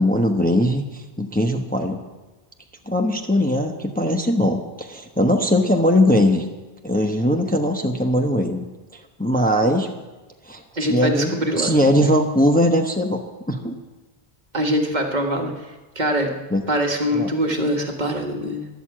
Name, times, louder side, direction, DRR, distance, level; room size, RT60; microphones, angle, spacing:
voice 1, 0.0-2.0 2.9-6.5 6.8-8.7 8.9-9.9 10.4-13.2 13.5-13.8 16.5-16.6 17.1-17.3, left 1 dB, 10° left, 3 dB, 1.0 m, -20 dB
voice 2, 10.8-11.8 14.5-15.5 15.9-16.3 16.7-18.7, equal, 45° right, 2 dB, 1.7 m, -23 dB
13.0 x 11.5 x 7.7 m, 1.2 s
omnidirectional pair, 1.0 m